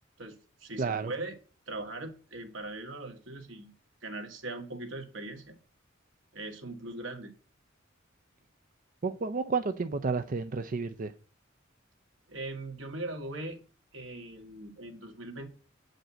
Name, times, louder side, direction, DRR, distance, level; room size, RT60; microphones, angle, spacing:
voice 1, 0.2-1.4 1.7-3.7 4.0-5.6 6.3-7.3 12.3-13.6 13.9-15.5, right 2 dB, 80° right, 2.0 m, -40 dB
voice 2, 0.8-1.1 9.0-11.1, right 4 dB, 45° right, 0.5 m, -31 dB
8.6 x 5.2 x 7.7 m
head